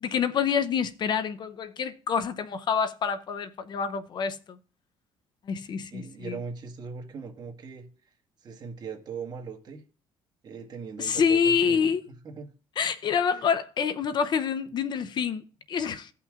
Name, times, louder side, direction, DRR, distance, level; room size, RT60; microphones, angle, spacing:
voice 1, 0.0-4.6 5.5-6.4 11.0-12.0 12.8-16.1, left 6 dB, 45° left, 0.5 m, -27 dB
voice 2, 5.9-7.8 8.4-9.8 10.4-12.5 13.3-13.5, right 5 dB, 45° right, 1.5 m, -40 dB
16.5 x 5.7 x 2.4 m
cardioid pair, 115°, 10 cm